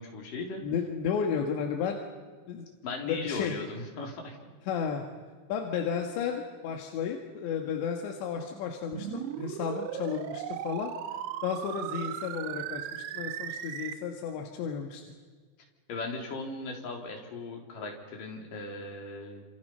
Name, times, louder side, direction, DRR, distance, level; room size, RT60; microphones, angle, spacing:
voice 1, 0.0-0.6 2.8-4.4 15.9-19.4, left 3 dB, 50° left, 1 dB, 4.7 m, -37 dB
voice 2, 0.6-2.0 2.5-2.7 3.1-3.5 4.7-5.1 5.5-10.9 11.4-15.0, left 7 dB, 90° left, 3 dB, 3.9 m, -33 dB
sound 1, 8.9-13.9, right 11 dB, 80° right, 3.1 m, -37 dB
28.0 x 28.0 x 5.6 m, 1.5 s
omnidirectional pair, 5.0 m